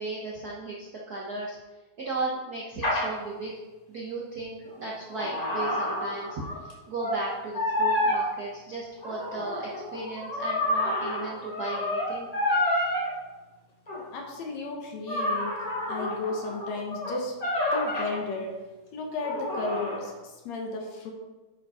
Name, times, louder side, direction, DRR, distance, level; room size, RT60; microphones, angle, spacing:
voice 1, 0.0-1.6 2.0-3.5 3.9-12.3, right 2 dB, 85° right, -3 dB, 0.8 m, -35 dB
sound 1, 2.8-3.1 4.7-6.7 7.0-7.3 7.5-8.2 9.0-13.1 13.9-14.0 15.1-18.2 19.2-20.1, left 1 dB, 30° left, 0.7 m, -29 dB
voice 2, 14.1-15.6 15.9-17.4 17.7-18.6 18.9-21.1, left 3 dB, 70° left, 1 dB, 2.3 m, -34 dB
8.5 x 5.1 x 4.9 m, 1.2 s
omnidirectional pair, 3.4 m